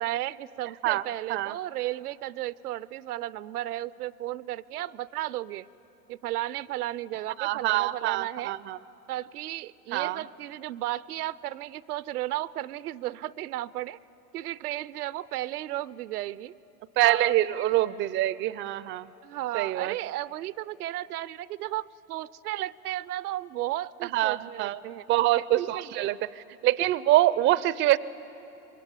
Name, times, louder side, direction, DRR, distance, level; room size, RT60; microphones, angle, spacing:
voice 1, 0.0-5.7 6.1-8.5 9.1-14.0 14.3-16.5 17.0-17.7 19.2-25.0 25.4-26.1, right 14 dB, 75° right, 19 dB, 0.6 m, -34 dB
voice 2, 7.4-8.8 9.9-10.2 17.0-19.1 19.5-20.0 24.1-24.8 25.1-26.2 26.6-28.0, right 15 dB, 25° right, 19 dB, 0.5 m, -25 dB
25.5 x 22.0 x 8.4 m, 3.0 s
hypercardioid pair, 90°, 46 cm